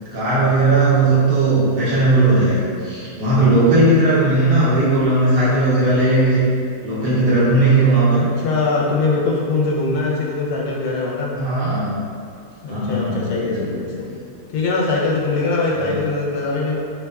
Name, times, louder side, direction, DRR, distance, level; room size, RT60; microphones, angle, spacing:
voice 1, 0.1-6.4 6.8-8.2 11.4-11.9 12.7-13.2 13.5-13.7 15.7-15.9, right 2 dB, 60° right, -10 dB, 0.6 m, -17 dB
voice 2, 8.1-11.3 12.6-14.2 14.5-16.8, left 3 dB, 75° left, -4 dB, 1.0 m, -22 dB
2.9 x 2.2 x 2.2 m, 2.3 s
omnidirectional pair, 1.7 m